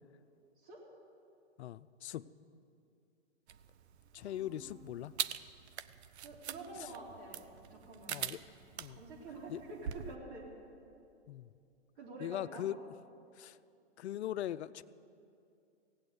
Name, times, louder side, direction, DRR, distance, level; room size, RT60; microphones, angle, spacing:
voice 1, 1.6-2.2 4.1-5.1 8.1-8.4 8.8-9.0 9.5-9.6 11.3-11.5 12.2-12.8 13.4-13.6 14.0-14.8, left 12 dB, 70° left, 16 dB, 0.5 m, -40 dB
sound 1, 3.5-10.2, right 10 dB, 70° right, 0.6 m, -44 dB
voice 2, 4.2-4.9 6.2-8.2 8.9-10.5 12.0-12.7, right 2 dB, 45° right, -2 dB, 3.9 m, -48 dB
16.5 x 8.5 x 8.0 m, 2.6 s
hypercardioid pair, 135°, 34 cm